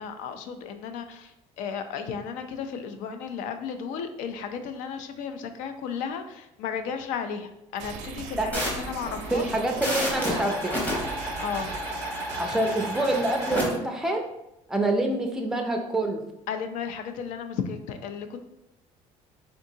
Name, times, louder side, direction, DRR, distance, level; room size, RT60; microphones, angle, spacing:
voice 1, 0.0-9.5 11.4-11.7 16.5-18.4, left 6 dB, 85° left, 8 dB, 0.4 m, -34 dB
sound 1, 7.8-13.8, right 6 dB, 80° right, 0.5 m, -40 dB
sound 2, 8.5-13.6, equal, 15° left, 0.9 m, -31 dB
voice 2, 9.3-10.8 12.4-14.3 14.7-16.2, right 1 dB, 5° right, 2 dB, 0.4 m, -26 dB
3.8 x 3.4 x 2.7 m, 0.86 s
cardioid pair, 165°, 13 cm